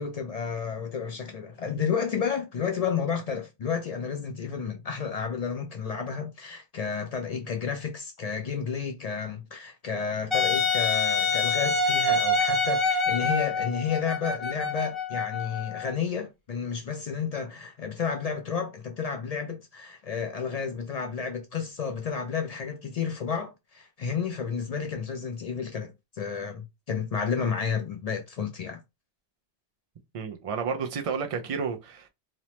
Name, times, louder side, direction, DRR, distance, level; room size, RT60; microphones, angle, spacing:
voice 1, 0.0-28.8, left 6 dB, 65° left, 0.4 m, -31 dB
Wind instrument woodwind instrument, 10.3-15.9, left 3 dB, 30° left, 0.8 m, -26 dB
voice 2, 30.1-32.1, right 6 dB, 65° right, 0.3 m, -31 dB
3.0 x 2.0 x 2.8 m
omnidirectional pair, 1.1 m